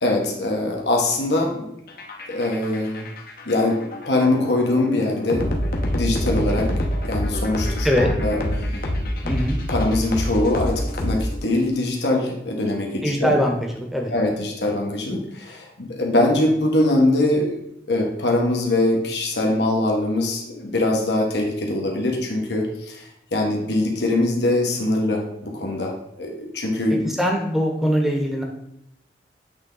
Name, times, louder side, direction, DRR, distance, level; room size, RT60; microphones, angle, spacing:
voice 1, 0.0-1.7 2.3-3.1 3.4-5.5 5.9-6.7 7.0-8.8 9.7-13.3 14.1-17.6 17.9-27.1, left 2 dB, 75° left, 1 dB, 1.2 m, -22 dB
sound 1, 1.9-11.6, left 1 dB, 55° left, 0.9 m, -26 dB
voice 2, 9.2-9.6 13.0-14.1 27.0-28.4, equal, ahead, 1 dB, 0.8 m, -22 dB
8.0 x 3.4 x 3.8 m, 0.79 s
head